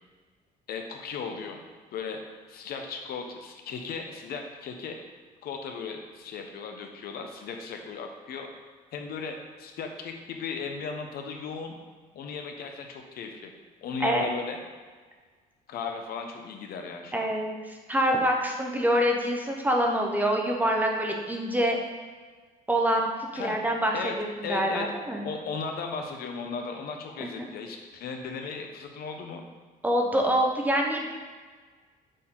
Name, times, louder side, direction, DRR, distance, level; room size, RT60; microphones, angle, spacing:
voice 1, 0.7-1.6 1.9-2.2 2.5-4.9 5.4-8.5 8.9-11.7 12.1-13.5 13.8-14.6 15.7-17.3 23.3-23.6 23.9-24.1 24.4-24.9 25.2-29.4, left 5 dB, 65° left, 3 dB, 0.8 m, -36 dB
voice 2, 17.1-17.6 17.9-21.8 22.7-25.2 27.2-27.5 29.8-31.1, equal, 10° right, 1 dB, 0.8 m, -26 dB
6.5 x 4.2 x 3.8 m, 1.5 s
cardioid pair, 110°, 17 cm